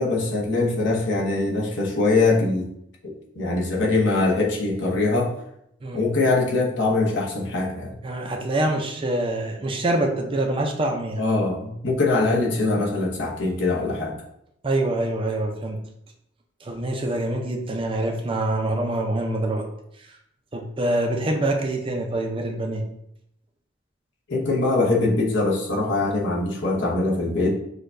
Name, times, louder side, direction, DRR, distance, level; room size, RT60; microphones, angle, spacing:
voice 1, 0.0-2.7 3.0-5.4 5.9-7.9 11.2-14.2 24.3-27.5, left 2 dB, 65° left, -2 dB, 0.8 m, -22 dB
voice 2, 8.0-11.2 14.6-15.8 16.6-19.7 20.0-20.1 20.5-22.8, right 1 dB, 25° right, 2 dB, 0.5 m, -25 dB
6.3 x 2.2 x 2.5 m, 0.75 s
head